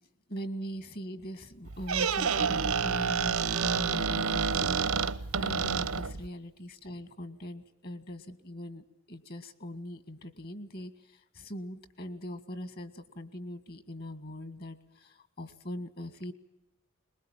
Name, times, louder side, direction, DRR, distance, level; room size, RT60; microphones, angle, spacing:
voice 1, 0.3-4.8 5.0-16.3, equal, 45° left, 12 dB, 1.9 m, -41 dB
Squeak, 1.7-6.3, right 6 dB, 85° right, 0.9 m, -29 dB
22.5 x 21.0 x 8.9 m, 0.85 s
head